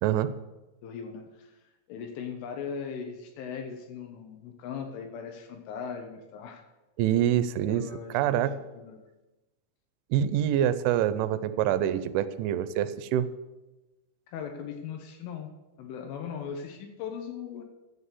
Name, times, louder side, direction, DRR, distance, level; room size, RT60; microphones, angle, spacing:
voice 1, 0.0-0.3 7.0-7.8 8.1-8.5 10.1-13.3, right 11 dB, 80° right, 12 dB, 3.0 m, -25 dB
voice 2, 0.8-1.6 1.9-6.6 7.6-8.4 8.7-9.0 14.3-15.5 15.8-17.6, left 7 dB, 80° left, 4 dB, 3.6 m, -39 dB
11.0 x 7.6 x 8.2 m, 1.1 s
omnidirectional pair, 5.7 m